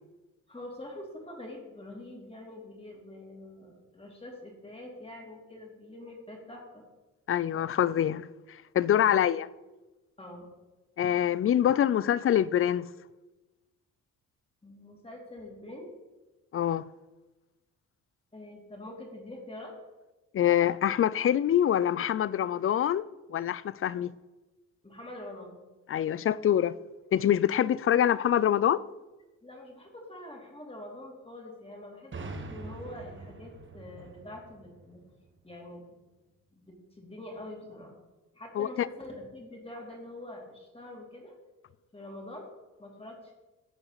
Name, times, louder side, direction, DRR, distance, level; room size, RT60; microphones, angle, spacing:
voice 1, 0.5-6.8 9.0-9.2 10.2-10.6 14.6-15.9 18.3-19.7 24.8-25.6 29.4-35.0 35.4-35.9 36.5-38.0 38.3-41.3 41.9-42.5 42.8-43.3, left 1 dB, 15° left, 2.9 m, -45 dB
voice 2, 7.3-9.5 11.0-12.9 16.5-16.9 20.3-24.1 25.9-26.7 27.1-28.8 38.6-38.9, left 10 dB, 40° left, 0.4 m, -25 dB
sound 1, 32.1-35.8, right 3 dB, 35° right, 1.2 m, -44 dB
14.5 x 4.8 x 4.1 m
supercardioid pair, 65°, 34 cm